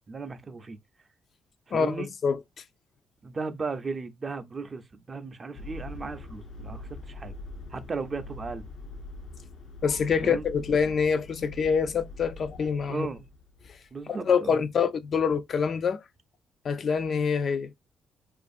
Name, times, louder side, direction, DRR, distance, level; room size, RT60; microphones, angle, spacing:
voice 1, 0.1-0.8 1.7-2.1 3.2-7.3 7.7-8.7 10.2-10.4 12.9-13.2 13.9-14.6, right 4 dB, 35° right, 0.4 m, -36 dB
voice 2, 1.7-2.4 9.8-13.1 14.1-16.0 16.6-17.7, left 6 dB, 50° left, 0.3 m, -26 dB
sound 1, 5.5-13.9, left 2 dB, 90° left, 0.6 m, -43 dB
2.5 x 2.4 x 2.4 m
cardioid pair, 90°, 0 cm